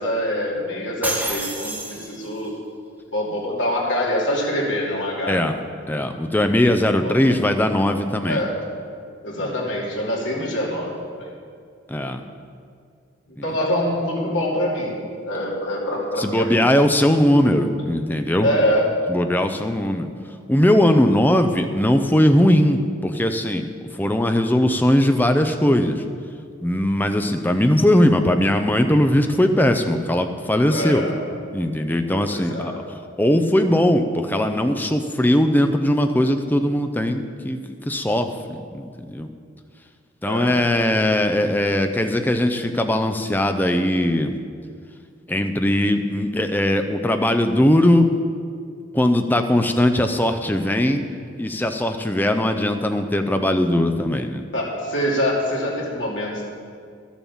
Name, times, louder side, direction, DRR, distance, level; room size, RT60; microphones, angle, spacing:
voice 1, 0.0-2.5 3.1-5.4 7.0-7.2 8.2-8.6 9.2-11.3 13.3-16.7 18.4-18.9 30.7-31.2 32.3-32.9 40.3-40.6 54.5-56.4, equal, 70° left, -3 dB, 2.6 m, -25 dB
sound 1, 1.0-2.5, right 2 dB, 10° right, 1.2 m, -29 dB
voice 2, 5.9-8.4 9.4-9.5 11.9-12.2 13.4-13.5 16.2-18.5 19.1-20.1 20.5-23.7 24.0-26.0 26.6-31.0 31.5-32.7 33.2-39.3 40.2-44.3 45.3-48.2 48.9-51.0 51.4-54.4, left 1 dB, 10° left, 6 dB, 0.6 m, -19 dB
12.0 x 7.3 x 7.1 m, 2.2 s
head